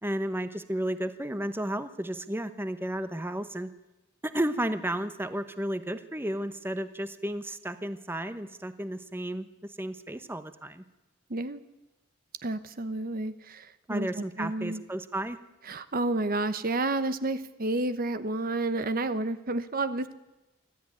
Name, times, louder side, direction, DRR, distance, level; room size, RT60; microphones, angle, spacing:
voice 1, 0.0-3.7 4.2-10.8 13.9-15.4, right 1 dB, 10° right, 11 dB, 1.0 m, -33 dB
voice 2, 11.3-11.6 12.4-14.8 15.7-20.1, right 2 dB, 45° right, 12 dB, 0.9 m, -30 dB
24.5 x 15.0 x 9.7 m, 1.0 s
head